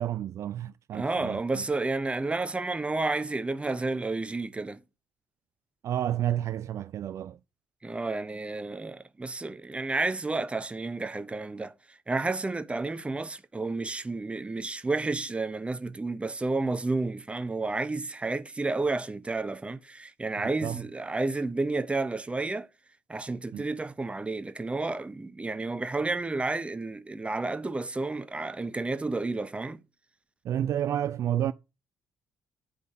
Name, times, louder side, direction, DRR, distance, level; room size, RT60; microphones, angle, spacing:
voice 1, 0.0-1.6 5.8-7.4 20.4-20.8 23.5-23.6 30.4-31.5, right 11 dB, 45° right, 0.4 m, -30 dB
voice 2, 0.9-4.8 7.8-22.7 23.1-29.8, right 3 dB, 15° right, 0.9 m, -31 dB
8.4 x 5.1 x 6.2 m
figure-of-eight pair, 50°, 7 cm